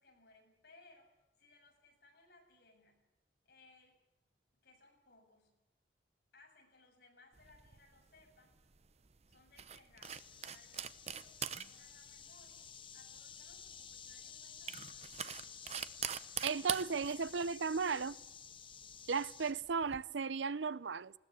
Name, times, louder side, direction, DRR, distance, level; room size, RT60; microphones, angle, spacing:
voice 1, 0.0-3.1 3.4-4.0 4.6-5.6 6.3-8.6 9.3-16.3, left 3 dB, 60° left, 7.4 m, -65 dB
sound 1, 7.4-20.0, right 8 dB, 35° right, 0.8 m, -45 dB
sound 2, 10.0-19.5, left 7 dB, 30° left, 0.9 m, -53 dB
voice 2, 16.4-18.2 19.1-21.1, right 5 dB, 90° right, 0.6 m, -35 dB
20.5 x 18.0 x 8.3 m
head